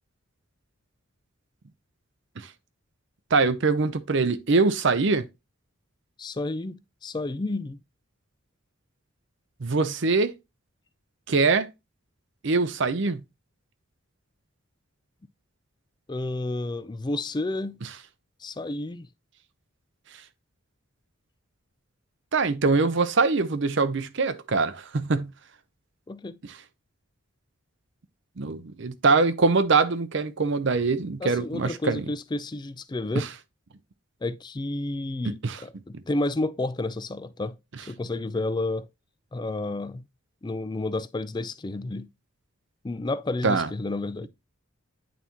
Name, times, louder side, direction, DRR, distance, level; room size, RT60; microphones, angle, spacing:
voice 1, 3.3-5.3 9.6-10.3 11.3-11.7 12.4-13.2 22.3-25.3 28.4-32.0 33.1-33.3 35.4-35.6 43.4-43.7, right 4 dB, 60° right, 0.6 m, -23 dB
voice 2, 6.2-7.8 16.1-17.8 18.4-19.1 26.1-26.4 31.2-33.3 34.2-37.6 37.9-38.9 39.3-40.1 40.4-42.1 42.8-44.3, left 2 dB, 20° left, 0.3 m, -31 dB
9.2 x 4.1 x 2.9 m
head